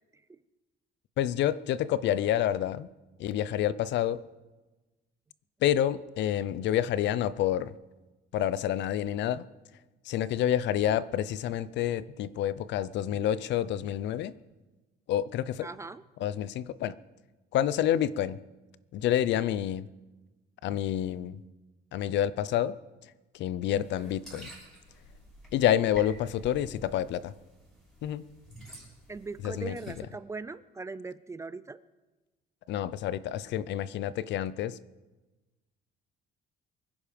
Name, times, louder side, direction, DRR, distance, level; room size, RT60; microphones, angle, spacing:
voice 1, 1.2-2.9 3.2-4.2 5.6-7.7 8.3-9.4 10.1-14.3 15.1-15.7 16.2-16.9 17.5-18.4 18.9-19.8 20.6-21.4 21.9-22.7 23.3-24.5 25.5-27.3 28.0-28.2 29.4-29.8 32.7-34.7, left 11 dB, 65° left, 17 dB, 0.6 m, -28 dB
voice 2, 15.6-16.0 23.7-24.1 29.1-31.8, right 3 dB, 15° right, 16 dB, 0.4 m, -40 dB
sound 1, 23.7-29.9, equal, ahead, 6.2 m, -50 dB
23.5 x 10.5 x 5.2 m, 1.2 s
cardioid pair, 155°, 20 cm